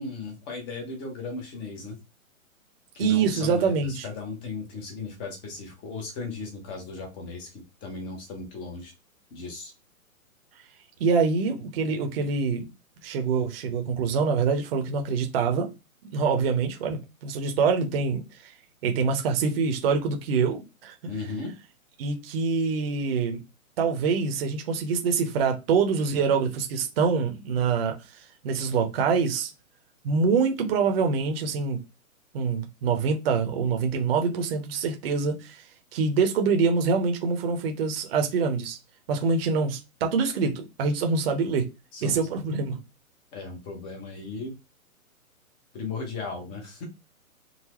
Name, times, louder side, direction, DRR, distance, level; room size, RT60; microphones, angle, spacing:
voice 1, 0.0-2.0 2.9-8.9 9.3-9.7 21.1-21.5 41.9-42.2 43.3-44.5 45.7-46.8, left 3 dB, 15° left, 0.5 m, -36 dB
voice 2, 3.0-4.1 11.0-12.7 13.0-15.7 16.1-18.5 18.8-21.0 22.0-23.4 23.8-29.5 30.0-31.8 32.3-35.6 35.9-38.8 39.1-41.7 42.0-42.8, right 5 dB, 45° right, 0.8 m, -25 dB
3.9 x 2.0 x 2.9 m
hypercardioid pair, 145°, 42 cm